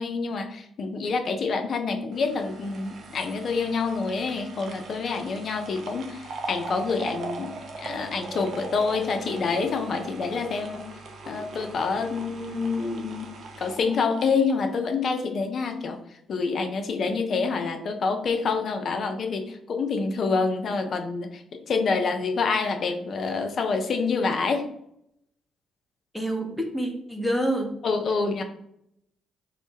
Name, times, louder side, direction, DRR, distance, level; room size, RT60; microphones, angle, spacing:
voice 1, 0.0-10.8 11.3-13.3 13.6-16.0 16.3-24.7 27.8-28.4, left 4 dB, 50° left, 5 dB, 0.4 m, -27 dB
sound 1, 2.1-15.4 15.7-15.8, right 3 dB, 55° right, 0.4 m, -40 dB
voice 2, 26.1-27.7, right 1 dB, ahead, 1 dB, 0.6 m, -27 dB
2.0 x 2.0 x 3.1 m, 0.75 s
figure-of-eight pair, 45°, 0 cm